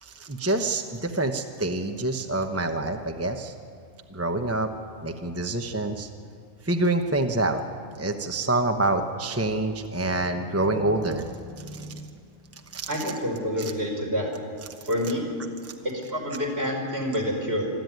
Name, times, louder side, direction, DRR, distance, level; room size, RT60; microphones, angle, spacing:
voice 1, 0.0-3.5 4.1-4.7 5.0-6.1 6.6-7.6 8.0-12.1 12.7-12.9 13.6-13.7 15.6-15.7, right 2 dB, 15° right, 5 dB, 0.8 m, -27 dB
voice 2, 12.9-14.3 14.8-15.2 15.8-17.7, equal, 50° right, -1 dB, 4.9 m, -27 dB
25.0 x 12.5 x 9.3 m, 2.2 s
omnidirectional pair, 1.3 m